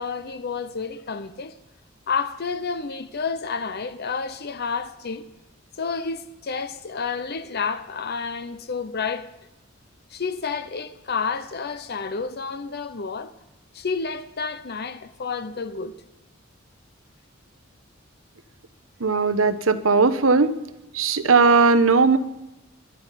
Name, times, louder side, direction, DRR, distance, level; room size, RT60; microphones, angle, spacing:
voice 1, 0.0-1.5 2.1-5.2 5.8-9.3 10.1-13.3 13.7-16.0, left 5 dB, 55° left, 0.8 m, -30 dB
voice 2, 19.0-20.5 20.9-22.2, right 4 dB, 85° right, 1.0 m, -18 dB
22.0 x 11.0 x 5.7 m
head